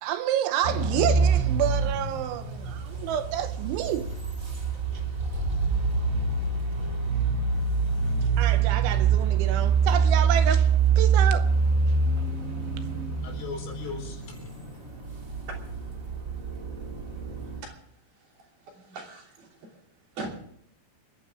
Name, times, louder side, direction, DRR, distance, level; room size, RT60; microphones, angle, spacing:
voice 1, 0.0-4.1 8.4-11.5, right 11 dB, 80° right, 3.1 m, -29 dB
sound 1, 0.6-17.6, right 5 dB, 35° right, 1.2 m, -25 dB
sound 2, 7.2-15.8, equal, 10° left, 5.0 m, -44 dB
voice 2, 13.0-15.1, left 5 dB, 70° left, 6.6 m, -41 dB
voice 3, 18.2-19.8 20.1-20.4, right 3 dB, 50° right, 4.5 m, -41 dB
29.5 x 10.5 x 3.6 m
omnidirectional pair, 5.6 m